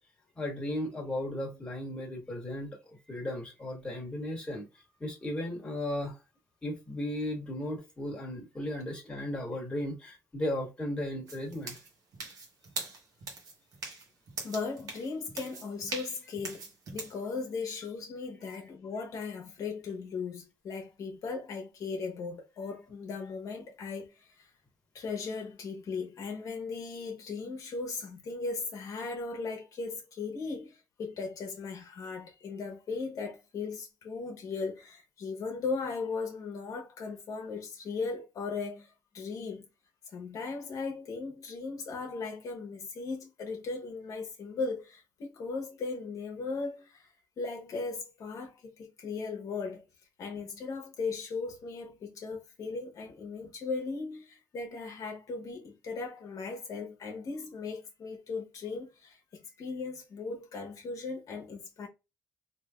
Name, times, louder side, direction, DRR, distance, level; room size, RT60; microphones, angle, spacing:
voice 1, 0.4-4.7 5.0-6.1 6.6-11.8 18.4-18.6, left 1 dB, 15° left, 1.3 m, -35 dB
sound 1, 11.3-17.2, right 4 dB, 65° right, 1.1 m, -41 dB
voice 2, 14.4-16.6 16.9-24.5 24.9-39.7 40.1-49.8 50.2-59.2 59.6-61.9, left 4 dB, 60° left, 1.0 m, -37 dB
3.3 x 2.7 x 2.3 m
cardioid pair, 145°, 7 cm